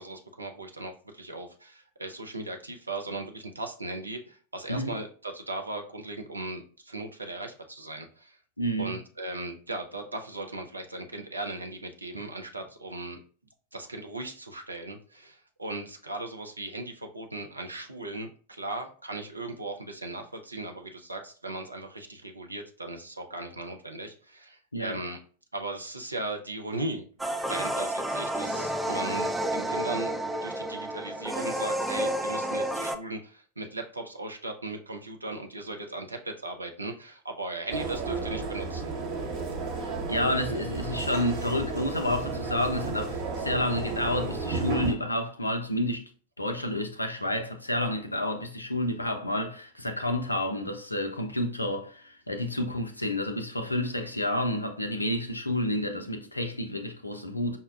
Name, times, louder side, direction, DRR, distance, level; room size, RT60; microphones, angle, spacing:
voice 1, 0.0-8.4 8.8-13.2 13.7-25.2 25.5-27.0 27.5-30.1 30.4-38.8, right 2 dB, 80° right, 0.5 m, -37 dB
voice 2, 8.6-9.0 24.7-25.0 39.7-46.1 46.4-57.6, left 1 dB, 85° left, 0.4 m, -30 dB
sound 1, 27.2-33.0, right 1 dB, 5° right, 0.3 m, -30 dB
sound 2, 37.7-44.9, right 4 dB, 45° right, 0.9 m, -33 dB
5.4 x 2.2 x 2.3 m
figure-of-eight pair, 90°, 0 cm